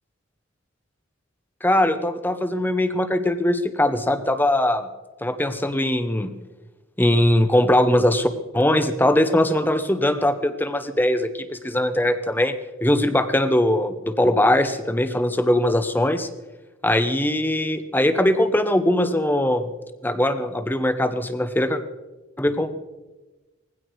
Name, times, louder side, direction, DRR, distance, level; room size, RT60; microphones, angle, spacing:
voice 1, 1.6-4.9 5.2-6.3 7.0-8.3 8.5-12.6 12.8-16.3 16.8-19.7 20.0-21.8 22.4-22.7, left 1 dB, 10° left, 10 dB, 0.9 m, -21 dB
19.5 x 15.5 x 4.7 m, 1.2 s
head